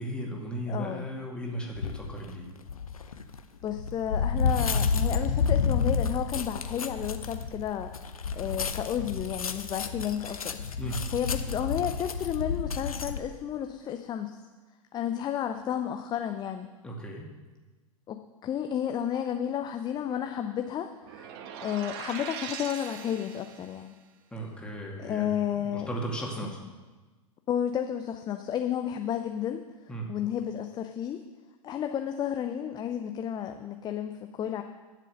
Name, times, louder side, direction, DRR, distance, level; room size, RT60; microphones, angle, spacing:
voice 1, 0.0-2.5 10.8-11.1 16.8-17.3 24.3-25.3 25.6-26.6 29.9-30.1, right 1 dB, 5° left, -2 dB, 2.4 m, -36 dB
voice 2, 0.7-1.1 3.6-7.9 8.4-10.6 11.1-14.4 14.9-16.7 18.1-21.3 21.6-23.9 25.0-25.9 26.4-26.5 27.5-29.6 30.1-31.2 31.6-34.6, left 9 dB, 25° left, 6 dB, 0.6 m, -32 dB
sound 1, 1.7-2.1 2.7-13.2, left 5 dB, 80° left, 0.8 m, -30 dB
sound 2, 21.0-23.8, right 8 dB, 50° right, 1.2 m, -41 dB
11.0 x 7.6 x 6.5 m, 1.3 s
figure-of-eight pair, 95°, 18 cm